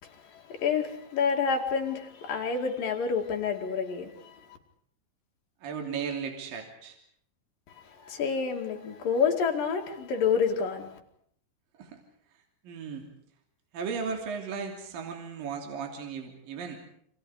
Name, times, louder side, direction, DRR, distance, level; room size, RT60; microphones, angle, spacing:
voice 1, 0.0-4.4 8.0-11.0, left 6 dB, 55° left, 3.9 m, -28 dB
voice 2, 5.6-7.0 11.8-12.0 12.6-13.1 13.7-16.8, right 6 dB, 55° right, 4.5 m, -36 dB
29.5 x 26.0 x 5.0 m
omnidirectional pair, 5.0 m